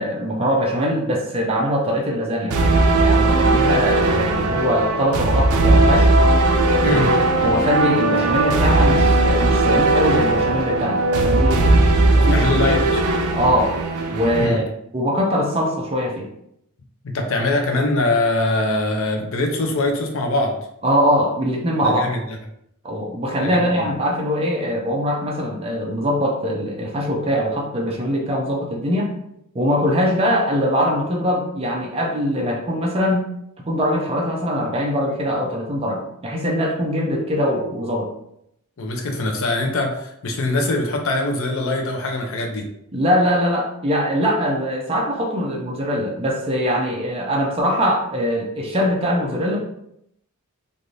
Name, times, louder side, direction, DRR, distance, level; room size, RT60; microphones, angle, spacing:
voice 1, 0.0-2.6 3.0-6.1 6.8-7.0 7.4-11.8 12.1-12.4 13.3-13.8 14.1-14.7 14.9-16.3 20.8-22.1 22.8-29.1 29.5-33.2 33.6-38.1 42.9-49.6, equal, 25° right, -1 dB, 0.5 m, -22 dB
sound 1, 2.5-14.5, right 2 dB, 80° right, 0.4 m, -17 dB
voice 2, 12.3-13.0 14.4-14.6 17.0-20.6 21.8-22.4 23.4-23.8 38.8-42.6, left 2 dB, 65° left, 2 dB, 0.6 m, -22 dB
3.2 x 2.5 x 2.6 m, 0.75 s
head